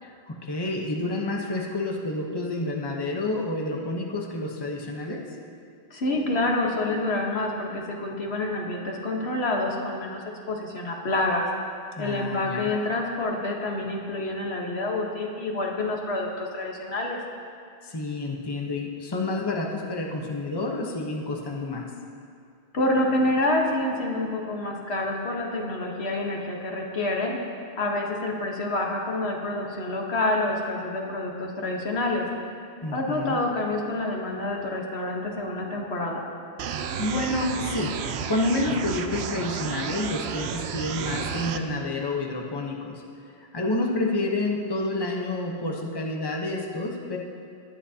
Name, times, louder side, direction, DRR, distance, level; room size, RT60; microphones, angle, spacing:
voice 1, 0.0-5.3 11.9-12.7 17.8-21.9 32.8-33.4 37.0-38.0 38.3-43.0 43.4-47.2, left 2 dB, 25° left, 0 dB, 1.0 m, -29 dB
voice 2, 5.9-11.5 12.0-17.2 22.7-27.4 27.8-32.2 32.9-36.2, left 2 dB, 75° left, 0 dB, 1.6 m, -27 dB
sound 1, 36.6-41.6, right 7 dB, 80° right, 0.9 m, -32 dB
19.5 x 10.0 x 2.8 m, 2.3 s
omnidirectional pair, 1.1 m